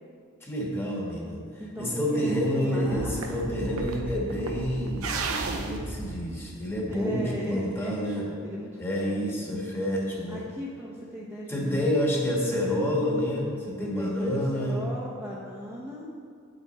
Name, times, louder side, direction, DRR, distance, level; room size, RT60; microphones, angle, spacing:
voice 1, 0.4-5.1 5.5-8.3 8.8-10.5 11.5-14.8, equal, 10° left, -3 dB, 1.5 m, -28 dB
voice 2, 1.6-3.5 4.7-4.8 6.9-9.1 9.4-9.5 10.3-11.9 13.8-16.1, equal, 5° right, -6 dB, 0.9 m, -38 dB
sound 1, 2.9-7.1, right 3 dB, 90° right, 0.8 m, -34 dB
8.1 x 8.1 x 4.2 m, 2.3 s
head